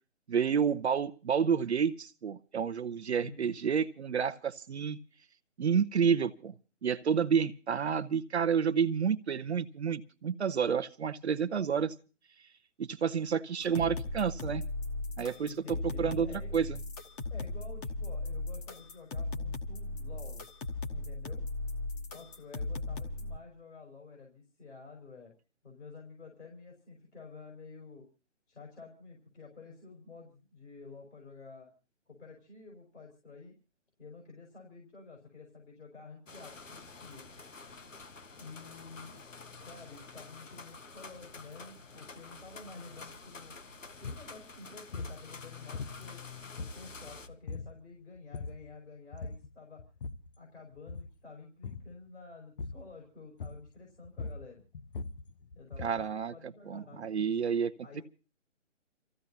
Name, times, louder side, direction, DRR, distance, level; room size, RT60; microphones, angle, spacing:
voice 1, 0.3-5.0 5.6-6.5 6.8-11.9 12.8-14.6 15.2-16.3 16.5-16.8 55.8-57.7, right 7 dB, 60° right, 10 dB, 0.7 m, -30 dB
voice 2, 3.2-3.6 15.4-16.6 17.3-20.4 20.9-21.4 22.1-25.3 25.6-28.1 28.5-31.7 32.1-33.5 34.0-37.3 38.3-39.2 39.6-43.6 44.0-46.2 46.6-49.8 50.4-54.6 55.5-57.3 57.8-58.0, left 4 dB, 65° left, 0 dB, 5.7 m, -50 dB
sound 1, 13.6-23.4, left 2 dB, 15° left, 1.2 m, -37 dB
sound 2, 36.3-47.3, left 4 dB, 85° left, 1.4 m, -49 dB
sound 3, 44.0-44.3 44.9-45.2 45.7-46.2 46.6-47.1 47.5-47.8 48.2-48.7 49.1-49.5 49.8-50.3 50.8-51.2 51.6-51.9 52.6-52.9 53.4-53.8 54.0-56.1, left 4 dB, 45° left, 0.7 m, -41 dB
29.0 x 15.0 x 2.8 m, 0.35 s
figure-of-eight pair, 145°, 37 cm